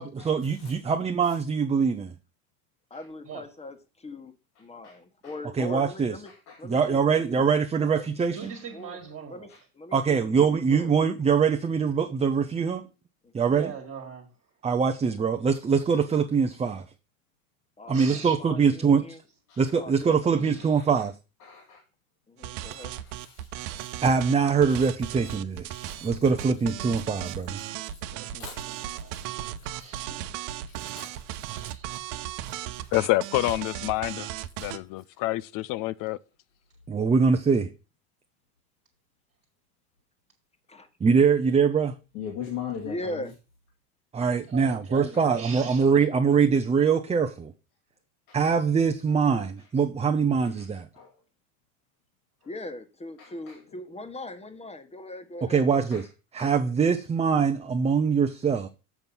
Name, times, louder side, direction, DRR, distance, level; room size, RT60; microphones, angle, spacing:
voice 1, 0.0-2.1 5.6-6.2 6.6-8.5 9.9-12.8 13.3-13.7 14.6-16.8 17.9-19.1 19.6-21.1 24.0-27.6 36.9-37.7 41.0-41.9 44.1-47.5 48.3-50.9 55.4-56.1 56.3-58.7, right 6 dB, 15° right, 0.7 m, -23 dB
voice 2, 2.9-4.3 4.6-6.3 6.6-7.5 7.8-7.9 8.7-9.0 9.3-9.5 9.7-10.9 13.2-13.5 17.8-19.2 19.7-20.7 22.3-22.9 29.9-30.0 40.7-40.9 42.8-43.3 52.4-55.7, left 1 dB, 15° left, 1.4 m, -40 dB
voice 3, 6.3-6.6 9.5-9.6 19.5-19.6 21.4-21.8 22.7-24.1 25.7-26.1 27.9-28.0 28.4-28.8 29.6-29.7 30.7-31.2 31.6-31.7 32.4-32.5 42.1-43.3 48.3-48.4 50.9-51.1 53.2-53.3 55.9-56.0 56.4-56.5, left 8 dB, 75° left, 2.3 m, -40 dB
voice 4, 8.3-9.5 13.5-14.3 17.9-18.6 20.3-20.9 28.1-30.3 31.5-32.3 44.5-46.1, right 7 dB, 30° right, 1.9 m, -42 dB
sound 1, 22.4-34.8, right 12 dB, 60° right, 0.9 m, -36 dB
voice 5, 32.9-34.3 34.6-36.2, left 17 dB, 50° left, 0.5 m, -27 dB
7.2 x 5.3 x 6.0 m
supercardioid pair, 100°, 44 cm